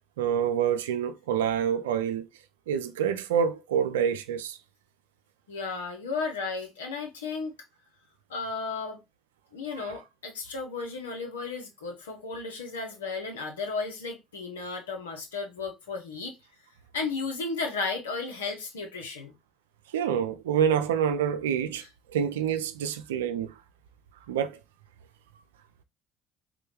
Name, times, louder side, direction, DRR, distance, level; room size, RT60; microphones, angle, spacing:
voice 1, 0.2-2.3 2.7-4.6 9.7-10.0 19.9-21.8 22.1-23.5 24.3-24.6, right 8 dB, 80° right, 0.3 m, -27 dB
voice 2, 5.5-7.5 8.3-9.0 9.5-16.3 16.9-19.3, left 4 dB, 85° left, 0.7 m, -34 dB
3.7 x 2.2 x 3.0 m
hypercardioid pair, 55°, 0 cm